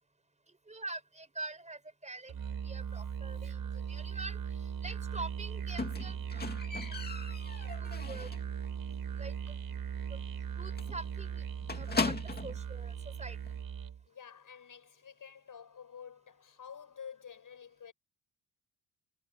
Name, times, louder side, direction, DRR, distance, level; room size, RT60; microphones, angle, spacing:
voice 1, 0.7-6.9 7.4-8.3 8.6-8.7 9.2-9.6 10.1-10.3 10.6-11.4 11.7-13.4, right 2 dB, 15° right, 5.1 m, -45 dB
Musical instrument, 2.3-14.0, right 8 dB, 50° right, 4.5 m, -39 dB
Squeak, 5.8-8.6 8.9-9.3 9.6-9.7 10.0-10.1 10.4-10.5 10.8-12.6 13.5-13.6, left 4 dB, 20° left, 2.3 m, -37 dB
voice 2, 14.1-17.9, left 7 dB, 45° left, 7.0 m, -50 dB
cardioid pair, 160°, 45 cm